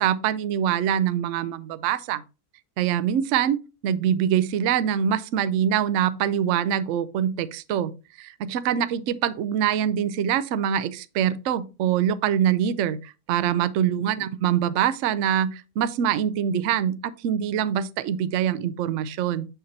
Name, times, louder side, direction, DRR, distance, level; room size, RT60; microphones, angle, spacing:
voice 1, 0.0-2.2 2.8-7.9 8.2-19.5, right 9 dB, 65° right, 0.8 m, -24 dB
7.4 x 5.8 x 2.7 m
omnidirectional pair, 1.7 m